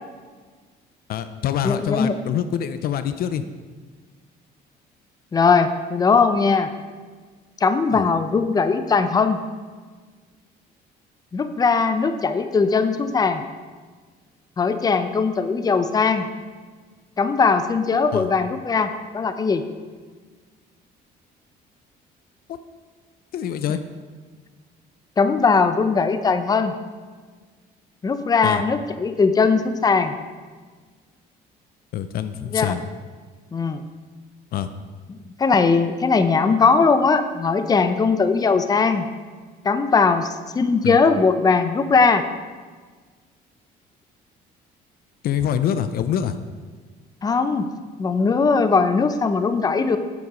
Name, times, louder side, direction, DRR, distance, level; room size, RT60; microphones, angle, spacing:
voice 1, 1.1-3.4 7.9-8.1 18.1-18.3 23.3-23.8 28.4-28.6 31.9-32.8 34.5-34.7 40.8-41.0 45.2-46.4, left 9 dB, 60° left, 11 dB, 0.6 m, -25 dB
voice 2, 1.6-2.2 5.3-6.7 7.6-9.4 11.3-13.4 14.6-16.3 17.2-19.6 25.2-26.7 28.0-30.1 32.5-32.8 33.5-33.8 35.4-39.1 39.6-42.2 47.2-47.7 48.0-50.0, left 4 dB, 20° left, 10 dB, 0.6 m, -19 dB
8.3 x 7.9 x 5.1 m, 1.5 s
cardioid pair, 110°, 17 cm